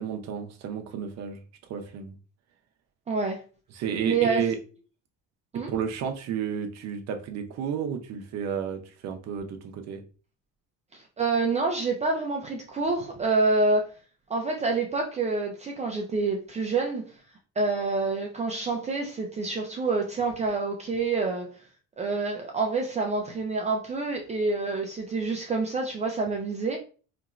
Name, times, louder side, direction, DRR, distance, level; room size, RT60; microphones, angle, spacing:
voice 1, 0.0-1.4 1.7-2.1 3.7-4.6 5.5-10.0, right 7 dB, 60° right, 0.7 m, -32 dB
voice 2, 3.1-3.4 4.0-4.5 5.5-5.7 10.9-13.9 14.3-17.1 17.6-21.5 22.0-26.8, right 3 dB, 20° right, 0.5 m, -27 dB
4.4 x 2.9 x 2.4 m
cardioid pair, 150°, 30 cm